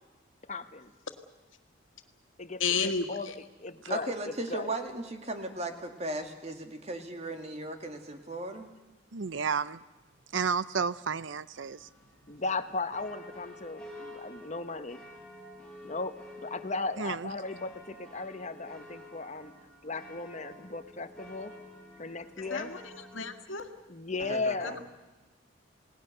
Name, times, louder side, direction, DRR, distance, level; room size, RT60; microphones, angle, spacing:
voice 1, 0.5-0.9 2.4-4.7 12.3-15.0 15.8-16.1 16.4-19.5 19.8-21.5 22.0-22.7 23.9-24.8, left 3 dB, 35° left, 10 dB, 1.1 m, -36 dB
voice 2, 2.6-3.1 22.5-23.7 24.6-24.7, left 5 dB, 85° left, 7 dB, 1.9 m, -31 dB
voice 3, 3.9-8.7 24.2-24.8, right 2 dB, 35° right, 5 dB, 2.2 m, -37 dB
voice 4, 9.1-9.8 10.3-11.9 17.0-17.3, right 5 dB, 70° right, 17 dB, 0.7 m, -31 dB
sound 1, 11.5-23.3, left 1 dB, 5° left, 5.2 m, -50 dB
28.5 x 19.0 x 6.7 m, 1.1 s
head